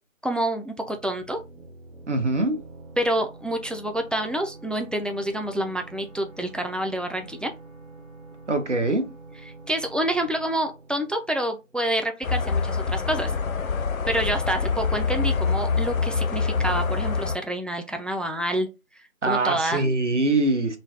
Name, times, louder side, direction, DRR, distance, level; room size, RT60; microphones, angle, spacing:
voice 1, 0.2-1.4 3.0-7.5 9.7-13.3 14.1-18.7 19.2-19.8, right 1 dB, 5° left, 0.3 m, -27 dB
sound 1, 0.8-12.3, right 3 dB, 85° right, 1.2 m, -46 dB
voice 2, 2.1-2.6 8.5-9.1 19.2-20.8, right 2 dB, 60° right, 0.7 m, -23 dB
sound 2, 12.2-17.4, left 5 dB, 85° left, 0.5 m, -25 dB
3.0 x 2.0 x 2.7 m
figure-of-eight pair, 175°, 41 cm